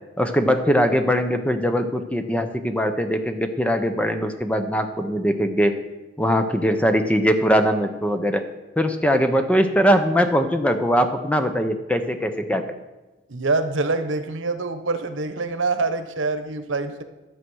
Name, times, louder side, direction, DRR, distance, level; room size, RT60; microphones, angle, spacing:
voice 1, 0.2-5.8 6.2-8.4 8.8-12.6, equal, 5° left, 7 dB, 0.7 m, -21 dB
voice 2, 13.3-17.0, right 3 dB, 80° right, 9 dB, 1.0 m, -25 dB
13.0 x 7.7 x 6.2 m, 1.1 s
head